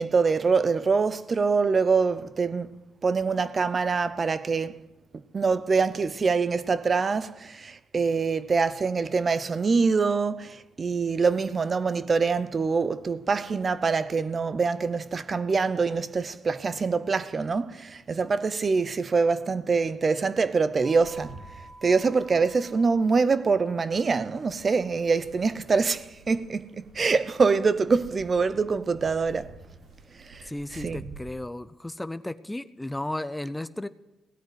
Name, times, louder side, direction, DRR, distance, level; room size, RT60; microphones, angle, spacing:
voice 1, 0.0-2.7 3.0-4.8 5.3-21.4 21.8-29.5 30.3-30.5 30.8-31.0, right 4 dB, 35° right, 0.6 m, -25 dB
sound 1, 20.8-31.4, right 3 dB, 60° right, 5.4 m, -49 dB
voice 2, 30.5-33.9, left 1 dB, 10° left, 0.5 m, -34 dB
17.0 x 8.9 x 7.9 m
cardioid pair, 90°, 0 cm